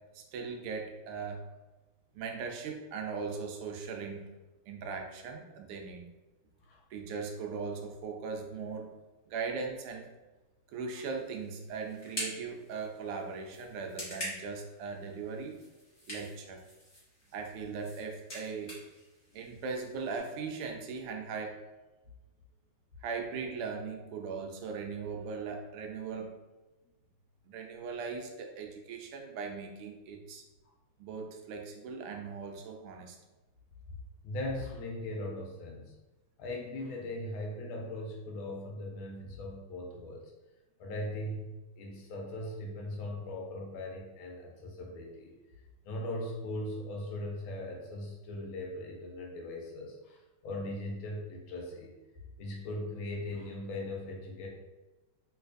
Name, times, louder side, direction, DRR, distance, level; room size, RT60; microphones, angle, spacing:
voice 1, 0.1-1.4 2.1-4.3 4.7-6.1 6.9-9.0 9.3-10.1 10.7-15.6 16.1-16.6 17.3-18.8 19.3-21.6 23.0-26.4 27.5-30.4 31.0-33.2, right 5 dB, 85° right, 3 dB, 1.5 m, -39 dB
sound 1, 11.0-20.2, equal, 30° left, 1.2 m, -46 dB
voice 2, 34.2-35.9 36.4-40.2 40.8-45.3 45.8-51.9 52.4-54.5, left 1 dB, 75° left, 0 dB, 1.3 m, -39 dB
3.2 x 3.1 x 2.5 m, 1.1 s
omnidirectional pair, 2.4 m